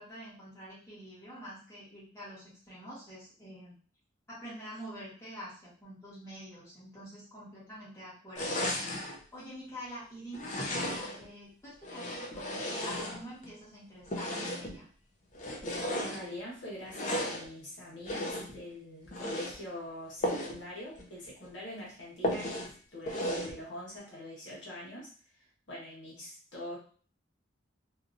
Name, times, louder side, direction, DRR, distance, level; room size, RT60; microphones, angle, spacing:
voice 1, 0.0-3.7 4.3-8.6 9.3-14.9, equal, 15° left, -10 dB, 1.3 m, -46 dB
sound 1, 8.3-9.2 10.3-11.3 11.8-13.5 14.1-14.8 15.3-16.2 16.9-17.5 18.0-18.6 19.1-19.6 20.2-20.6 21.0-21.1 21.4-21.5 22.2-22.7 23.1-23.6, left 1 dB, 40° left, 0.5 m, -34 dB
voice 2, 15.7-25.1 25.7-26.8, left 1 dB, 65° left, -5 dB, 1.3 m, -44 dB
2.8 x 2.4 x 2.5 m, 0.42 s
head